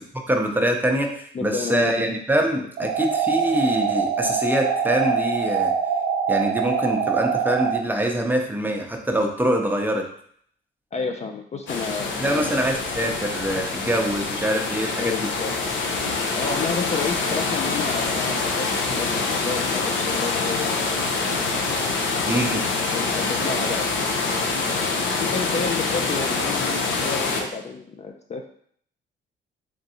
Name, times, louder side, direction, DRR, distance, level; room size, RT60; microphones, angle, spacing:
voice 1, 0.1-5.7 6.3-10.1 12.1-15.3 22.3-22.7, right 1 dB, 10° right, 2 dB, 0.6 m, -24 dB
voice 2, 1.3-2.2 10.9-12.6 14.9-15.5 16.3-20.8 21.1-21.2 21.7-21.8 22.9-24.3 25.2-28.5, left 5 dB, 35° left, 4 dB, 0.4 m, -31 dB
sound 1, 2.8-7.8, right 6 dB, 75° right, 0.5 m, -24 dB
sound 2, 11.7-27.4, left 3 dB, 70° left, 0.7 m, -25 dB
3.8 x 3.5 x 2.8 m, 0.63 s
cardioid pair, 90°, 20 cm